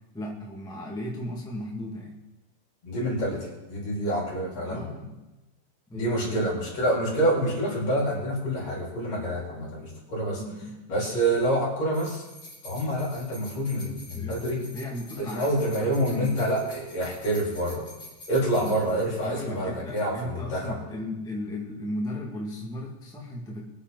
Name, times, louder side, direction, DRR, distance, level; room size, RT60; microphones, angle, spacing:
voice 1, 0.1-2.2 4.6-5.2 5.9-6.5 10.4-10.7 14.1-16.3 18.6-18.9 19.2-23.7, left 1 dB, ahead, -3 dB, 1.2 m, -36 dB
voice 2, 2.8-4.9 5.9-10.4 10.9-12.2 12.6-14.6 15.3-17.9 18.3-20.8, right 1 dB, 45° left, -4 dB, 5.4 m, -27 dB
sound 1, 11.9-19.6 19.9-20.0, left 1 dB, 30° left, 4.7 m, -47 dB
23.5 x 8.5 x 4.2 m, 1.1 s
omnidirectional pair, 4.2 m